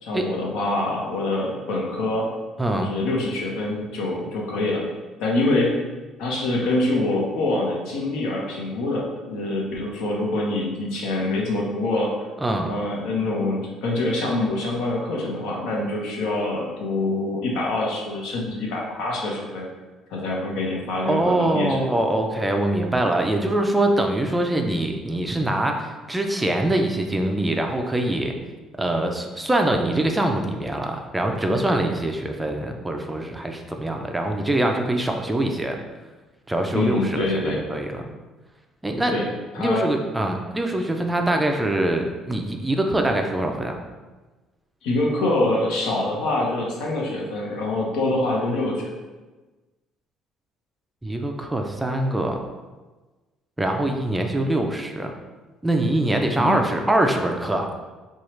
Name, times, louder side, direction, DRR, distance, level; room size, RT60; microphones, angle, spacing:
voice 1, 0.0-2.3 2.7-4.8 5.2-5.8 6.2-12.1 12.6-19.7 20.1-21.8 36.7-37.6 39.1-39.3 39.5-39.9 44.8-48.9 56.4-56.6, left 2 dB, 85° left, -2 dB, 0.9 m, -25 dB
voice 2, 2.6-2.9 12.4-12.7 21.1-28.3 28.8-35.8 36.5-38.0 38.8-39.2 39.6-43.8 51.0-52.4 53.6-55.1 55.6-57.7, right 1 dB, 10° right, 3 dB, 0.3 m, -23 dB
4.5 x 2.3 x 3.1 m, 1.2 s
cardioid pair, 145°, 0 cm